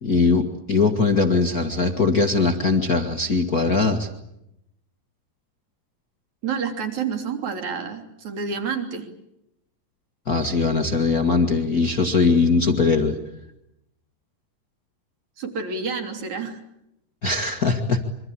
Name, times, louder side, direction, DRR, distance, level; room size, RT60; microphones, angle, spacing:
voice 1, 0.0-4.1 10.3-13.2 17.2-18.0, left 4 dB, 65° left, 4 dB, 0.9 m, -20 dB
voice 2, 6.4-9.1 15.4-16.6, right 5 dB, 50° right, 4 dB, 4.3 m, -29 dB
26.0 x 25.0 x 8.7 m, 0.84 s
omnidirectional pair, 4.6 m